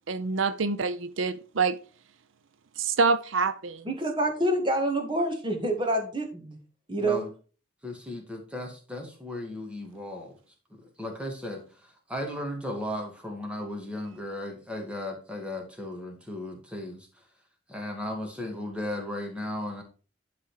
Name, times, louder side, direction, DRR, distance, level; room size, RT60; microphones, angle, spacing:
voice 1, 0.1-1.8 2.8-3.9, right 4 dB, 90° right, 0.6 m, -26 dB
voice 2, 3.9-6.6 6.9-7.2, right 1 dB, 25° right, 1.9 m, -27 dB
voice 3, 7.0-7.3 7.8-10.3 11.0-17.1 17.7-19.8, left 1 dB, 5° right, 2.1 m, -36 dB
11.5 x 4.2 x 4.9 m
head